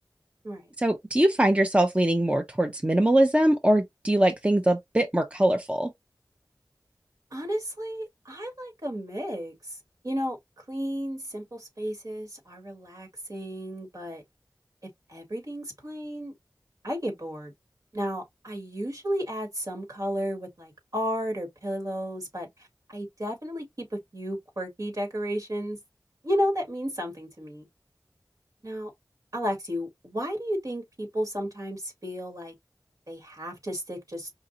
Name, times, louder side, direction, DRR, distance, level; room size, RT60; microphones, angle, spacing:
voice 1, 0.8-5.9, right 1 dB, 20° right, 0.7 m, -22 dB
voice 2, 7.3-9.5 10.0-10.4 10.7-14.2 15.1-16.3 16.8-17.5 17.9-22.5 22.9-25.8 26.2-27.7 28.6-28.9 29.3-32.5 33.1-34.3, equal, 60° right, 2.2 m, -33 dB
5.1 x 2.5 x 2.7 m
wide cardioid pair, 40°, 7 cm